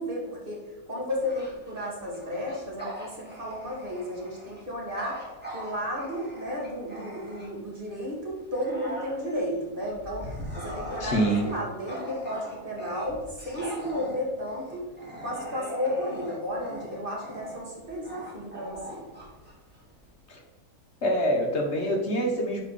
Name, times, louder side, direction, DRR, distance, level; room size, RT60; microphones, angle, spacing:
voice 1, 0.0-5.2 5.5-10.3 10.5-14.9 15.2-19.1, equal, 35° right, -3 dB, 2.1 m, -33 dB
Bark / Growling, 1.2-7.7 8.2-20.1, equal, 5° right, 2.1 m, -41 dB
voice 2, 11.0-11.5 20.3-20.4 21.0-22.6, equal, 50° left, 2 dB, 1.2 m, -25 dB
10.5 x 4.5 x 4.1 m, 1.2 s
omnidirectional pair, 1.7 m